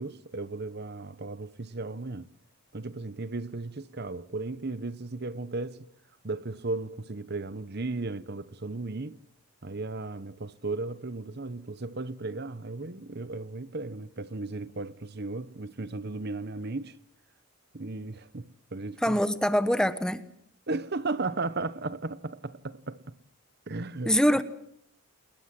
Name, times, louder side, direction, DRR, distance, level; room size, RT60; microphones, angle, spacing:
voice 1, 0.0-2.3 2.7-5.9 6.2-9.2 9.6-17.0 17.7-19.2 20.7-23.0 23.7-24.1, right 3 dB, 45° right, 1.0 m, -35 dB
voice 2, 19.0-20.2 24.0-24.4, equal, 5° left, 1.3 m, -24 dB
29.0 x 20.5 x 7.7 m
head